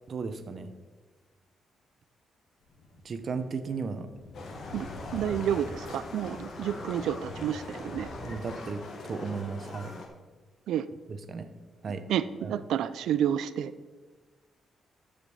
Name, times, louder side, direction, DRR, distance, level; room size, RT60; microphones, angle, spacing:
voice 1, 0.1-0.7 3.0-4.1 8.2-10.0 11.3-11.5 11.8-12.1 12.4-12.6, right 5 dB, 40° right, 10 dB, 0.7 m, -35 dB
sound 1, 2.6-8.6, left 2 dB, 80° left, 2.0 m, -45 dB
Livestock farm animals working animals, 4.3-10.1, left 2 dB, 50° left, 1.4 m, -41 dB
voice 2, 5.1-8.1 10.7-10.9 12.1-13.7, right 10 dB, 90° right, 14 dB, 0.4 m, -30 dB
13.5 x 5.1 x 5.4 m, 1.4 s
cardioid pair, 155°, 0 cm